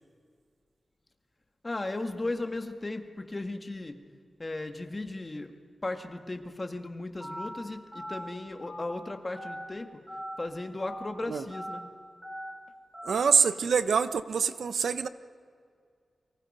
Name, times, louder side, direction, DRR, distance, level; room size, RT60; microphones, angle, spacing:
voice 1, 1.6-4.0 4.4-5.5 5.8-9.9 10.4-11.9, left 2 dB, 30° left, 6 dB, 1.8 m, -36 dB
Telephone, 7.2-7.5 7.9-8.2 8.6-8.9 9.4-9.6 10.1-10.3 10.8-11.1 11.5-11.8 12.2-12.5 12.9-13.2, equal, 10° right, 7.1 m, -39 dB
voice 2, 13.0-15.1, right 6 dB, 85° right, 12 dB, 0.9 m, -25 dB
29.5 x 24.5 x 5.5 m, 2.1 s
wide cardioid pair, 90°, 0 cm